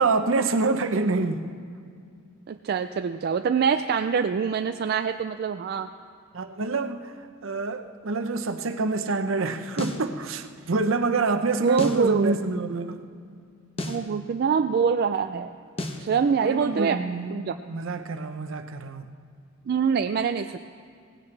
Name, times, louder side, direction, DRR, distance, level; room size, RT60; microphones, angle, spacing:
voice 1, 0.0-1.4 6.3-13.0 16.4-17.4 17.7-19.1, right 3 dB, 70° right, 0.8 m, -26 dB
voice 2, 2.5-5.9 11.6-12.3 13.9-15.5 16.0-17.0 17.3-17.6 19.7-20.6, right 6 dB, 50° right, 0.3 m, -24 dB
sound 1, 9.8-10.1 11.8-12.1 13.8-14.1 15.8-16.1, left 1 dB, 30° left, 1.0 m, -32 dB
18.0 x 15.5 x 3.3 m
head